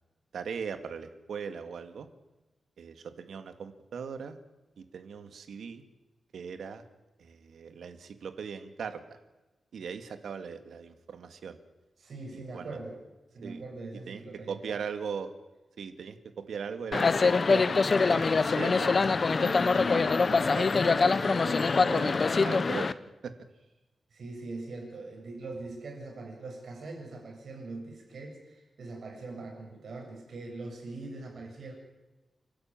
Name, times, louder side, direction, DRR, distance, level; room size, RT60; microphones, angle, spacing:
voice 1, 0.3-2.1 2.8-4.4 4.8-5.8 6.3-6.8 7.2-9.2 9.7-11.6 12.3-12.8 13.4-13.6 14.1-14.2 14.5-15.3 15.8-17.6 18.1-19.1 19.4-23.0 23.2-23.3, right 6 dB, 85° right, 8 dB, 1.9 m, -39 dB
voice 2, 12.0-13.0 13.3-14.8 18.5-18.9 19.3-19.6 24.1-31.7, right 3 dB, 60° right, 0 dB, 7.2 m, -42 dB
sound 1, 16.9-22.9, left 4 dB, 35° left, 0.7 m, -24 dB
29.0 x 13.0 x 8.9 m, 1.1 s
wide cardioid pair, 175°, 0 cm